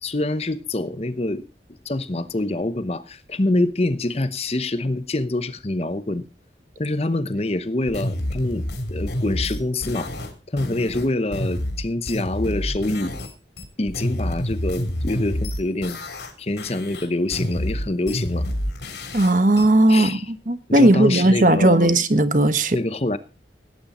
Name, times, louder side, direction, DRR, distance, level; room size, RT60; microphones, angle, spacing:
voice 1, 0.0-1.4 1.8-6.2 6.8-10.1 10.5-13.1 13.8-16.0 16.4-18.5 19.9-20.3 20.7-21.9 22.7-23.2, left 2 dB, 35° left, 0.9 m, -25 dB
sound 1, 7.9-13.3 13.6-16.3 16.6-19.6, left 1 dB, 75° left, 3.4 m, -28 dB
voice 2, 19.1-22.8, right 1 dB, 45° right, 1.2 m, -17 dB
17.5 x 9.7 x 4.2 m
head